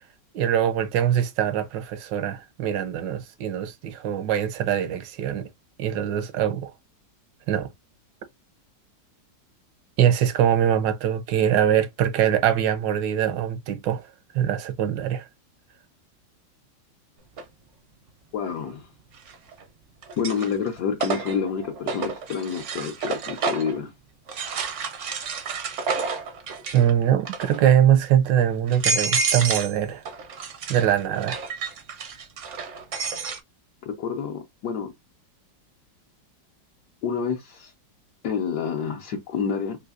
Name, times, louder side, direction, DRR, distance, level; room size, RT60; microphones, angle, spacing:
voice 1, 0.3-5.5 5.8-6.7 7.5-7.7 10.0-14.1 14.3-15.2 26.7-30.0 30.7-31.4, right 10 dB, 80° right, 1.3 m, -22 dB
sound 1, 17.4-17.5 19.2-19.6 20.0-23.8 24.3-26.9 27.2-27.7 28.2-28.3 28.7-29.8 30.0-33.4, right 4 dB, 65° right, 0.7 m, -29 dB
voice 2, 18.3-18.9 20.2-23.9 33.8-34.9 37.0-37.7 38.2-39.8, left 6 dB, 70° left, 1.1 m, -28 dB
4.0 x 2.6 x 2.4 m
omnidirectional pair, 1.9 m